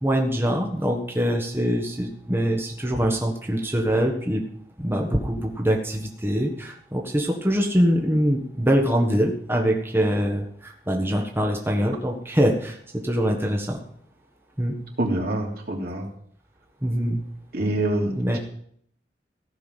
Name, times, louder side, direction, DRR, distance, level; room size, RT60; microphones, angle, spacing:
voice 1, 0.0-4.4 4.8-13.8 14.6-14.7 16.8-17.2 18.2-18.4, equal, 15° right, 1 dB, 1.5 m, -23 dB
voice 2, 15.0-16.1 17.5-18.4, right 1 dB, 60° right, 0 dB, 3.2 m, -26 dB
15.5 x 6.1 x 9.2 m, 0.65 s
head